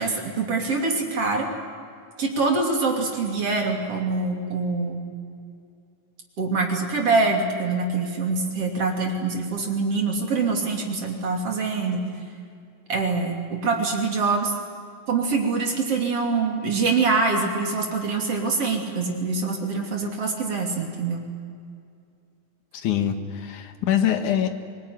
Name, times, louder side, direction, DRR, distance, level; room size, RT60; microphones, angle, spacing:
voice 1, 0.0-1.5 2.2-5.0 6.4-12.1 12.9-14.5 15.1-21.3, right 4 dB, 40° right, 1 dB, 3.7 m, -24 dB
voice 2, 22.8-24.5, left 10 dB, 60° left, 7 dB, 2.8 m, -24 dB
26.0 x 20.0 x 9.6 m, 2.3 s
omnidirectional pair, 4.2 m